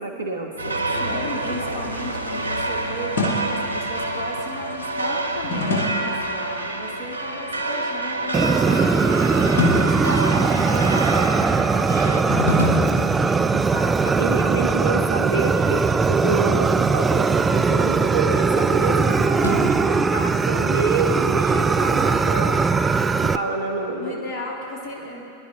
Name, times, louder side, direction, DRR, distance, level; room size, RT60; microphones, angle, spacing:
voice 1, 0.0-0.8 14.0-22.7 23.2-24.2, right 3 dB, 75° right, 1 dB, 1.6 m, -27 dB
sound 1, 0.6-12.2, right 2 dB, 90° left, 0.9 m, -28 dB
sound 2, 0.8-2.5 3.2-3.8 5.4-6.3 8.3-9.1 9.6-10.7 12.3-13.7 16.1-18.6 19.4-20.4, left 2 dB, 70° left, 1.6 m, -28 dB
voice 2, 1.0-14.0 19.5-20.5 24.0-25.2, left 1 dB, 35° left, -4 dB, 2.9 m, -36 dB
Fire, 8.3-23.4, right 4 dB, 15° right, 0.4 m, -20 dB
23.0 x 11.0 x 2.7 m, 3.0 s
figure-of-eight pair, 90°, 0 cm